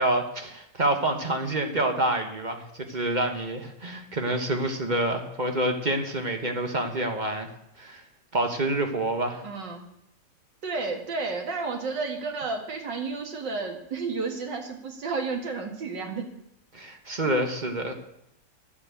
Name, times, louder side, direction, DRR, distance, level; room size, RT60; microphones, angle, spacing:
voice 1, 0.0-7.5 7.8-8.0 8.3-9.4 16.7-17.9, right 1 dB, 30° right, 4 dB, 1.2 m, -27 dB
voice 2, 9.4-9.9 10.6-16.3, right 4 dB, 80° right, 3 dB, 2.5 m, -32 dB
11.5 x 7.7 x 8.3 m, 0.79 s
omnidirectional pair, 1.9 m